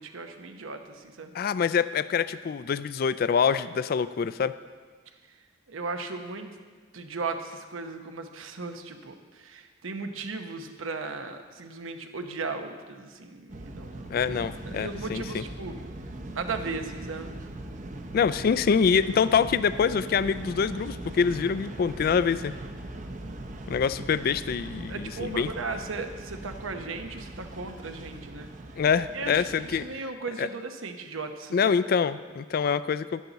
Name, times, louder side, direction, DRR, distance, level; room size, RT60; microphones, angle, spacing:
voice 1, 0.0-1.3 5.7-6.5 6.9-14.1 14.7-15.7 16.3-17.4 24.9-28.5 29.1-31.7, right 3 dB, 90° right, 6 dB, 1.0 m, -36 dB
voice 2, 1.3-4.5 14.1-15.4 18.1-22.5 23.7-25.5 28.8-29.9 30.4-30.5 31.5-33.2, left 6 dB, 50° left, 15 dB, 0.3 m, -25 dB
sound 1, 13.5-29.9, right 1 dB, 40° right, 0.7 m, -40 dB
12.0 x 11.0 x 4.0 m, 1.5 s
head